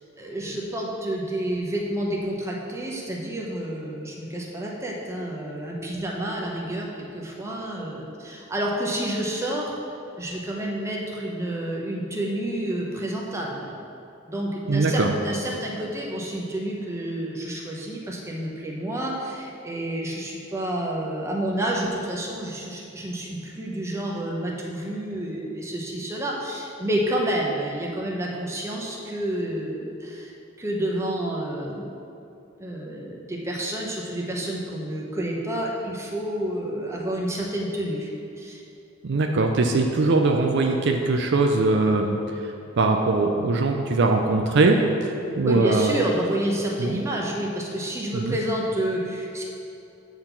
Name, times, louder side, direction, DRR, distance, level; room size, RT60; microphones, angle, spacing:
voice 1, 0.2-9.7 10.2-13.7 14.3-30.3 30.6-31.9 32.6-38.1 38.4-38.6 45.4-49.4, right 1 dB, 15° right, -2 dB, 0.9 m, -29 dB
voice 2, 14.7-15.1 39.0-42.2 42.8-46.0 46.8-47.0 48.1-48.4, right 3 dB, 60° right, 3 dB, 0.5 m, -21 dB
8.8 x 4.0 x 5.8 m, 2.6 s
head